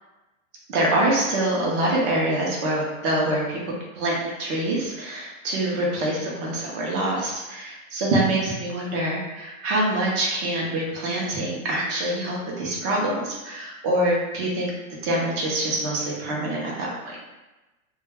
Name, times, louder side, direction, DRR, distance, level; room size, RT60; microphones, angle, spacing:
voice 1, 0.7-3.6 3.9-14.7 15.0-17.2, right 1 dB, 25° right, -3 dB, 0.4 m, -25 dB
2.2 x 2.1 x 3.3 m, 1.1 s
supercardioid pair, 145°, 42 cm